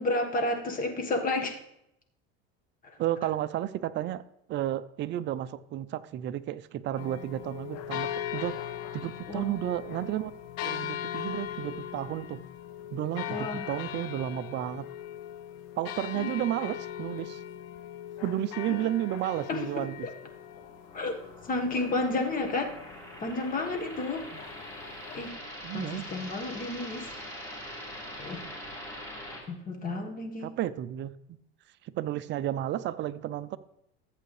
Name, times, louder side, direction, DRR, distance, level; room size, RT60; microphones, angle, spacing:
voice 1, 0.0-1.6 2.8-3.0 9.3-9.5 13.3-13.7 16.1-16.4 18.7-18.8 19.5-20.1 20.9-21.2 21.5-22.8 23.2-24.2 25.1-25.4 25.7-27.1 28.2-28.5 29.5-30.5, left 2 dB, 30° left, 3 dB, 1.5 m, -31 dB
voice 2, 3.0-4.2 4.5-8.6 8.9-10.3 10.6-12.4 12.9-14.9 15.8-17.4 18.2-20.1 24.3-24.4 25.6-26.0 30.4-31.4 31.8-33.6, right 12 dB, 40° right, 14 dB, 0.5 m, -32 dB
sound 1, 7.0-25.3, left 11 dB, 60° left, 0.9 m, -40 dB
sound 2, 20.2-29.4, equal, 10° left, 3.5 m, -43 dB
14.0 x 7.8 x 3.3 m, 0.81 s
supercardioid pair, 120°, 30 cm